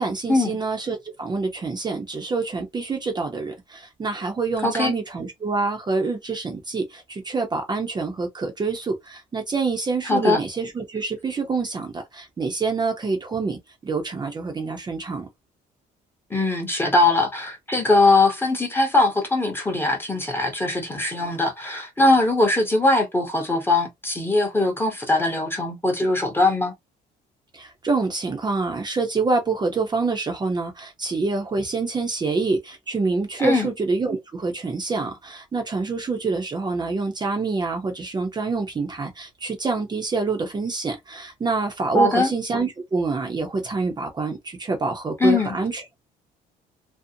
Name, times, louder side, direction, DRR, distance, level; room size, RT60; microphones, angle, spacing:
voice 1, 0.0-15.3 27.5-45.8, right 4 dB, 25° right, 0.6 m, -26 dB
voice 2, 4.6-4.9 10.1-10.4 16.3-26.7 33.4-33.7 41.9-42.3 45.2-45.5, left 2 dB, 15° left, 0.8 m, -21 dB
2.6 x 2.0 x 2.6 m
cardioid pair, 110°, 17 cm